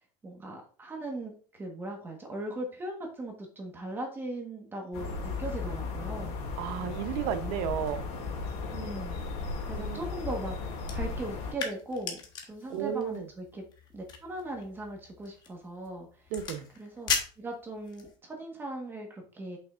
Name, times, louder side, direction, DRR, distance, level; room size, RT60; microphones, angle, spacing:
voice 1, 0.2-6.4 8.7-9.2 9.7-13.6 13.9-16.3 16.8-17.1 17.4-19.6, right 1 dB, 15° right, 1.3 m, -39 dB
sound 1, 4.9-11.5, left 4 dB, 85° left, 2.3 m, -36 dB
voice 2, 6.6-8.0 9.7-10.0 12.7-13.3 16.3-16.7, right 9 dB, 75° right, 0.8 m, -33 dB
sound 2, 10.8-18.2, left 5 dB, 30° left, 1.1 m, -39 dB
7.3 x 5.7 x 2.5 m
cardioid pair, 175°, 13 cm